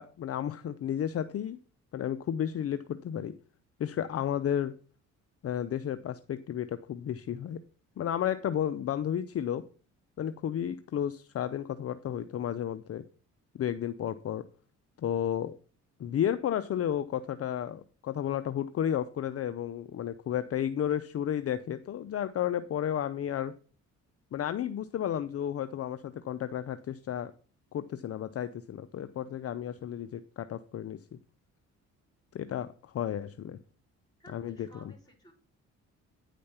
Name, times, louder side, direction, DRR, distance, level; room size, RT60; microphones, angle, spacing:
voice 1, 0.0-1.6 1.9-3.3 3.8-4.8 5.4-7.6 8.0-9.6 10.2-13.0 13.5-14.4 15.0-15.5 16.0-23.5 24.3-27.3 27.7-31.0 32.3-33.6 34.3-34.7, left 10 dB, 50° left, 12 dB, 0.6 m, -32 dB
voice 2, 34.2-35.3, equal, 15° left, 1 dB, 4.5 m, -55 dB
9.7 x 5.1 x 5.7 m, 0.39 s
cardioid pair, 90°, 30 cm